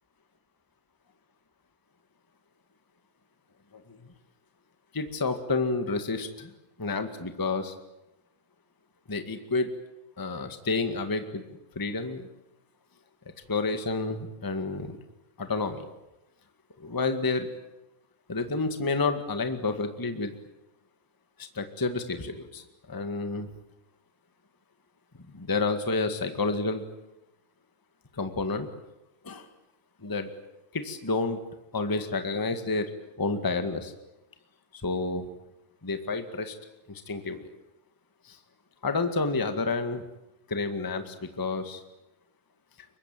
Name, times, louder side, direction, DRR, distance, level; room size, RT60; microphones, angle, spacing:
voice 1, 4.9-6.5 6.8-7.7 9.1-9.7 10.2-11.4 11.7-12.3 13.5-15.0 15.4-15.8 16.8-17.5 18.3-20.3 21.4-23.5 25.3-26.8 28.2-28.7 29.2-29.4 30.0-30.3 30.7-31.4 31.7-32.9 33.2-33.9 34.7-35.2 35.8-36.5 36.9-37.5 38.2-38.4 38.8-40.0 40.5-41.8, left 3 dB, 15° left, 8 dB, 0.8 m, -30 dB
24.5 x 22.5 x 9.2 m, 0.91 s
omnidirectional pair, 4.0 m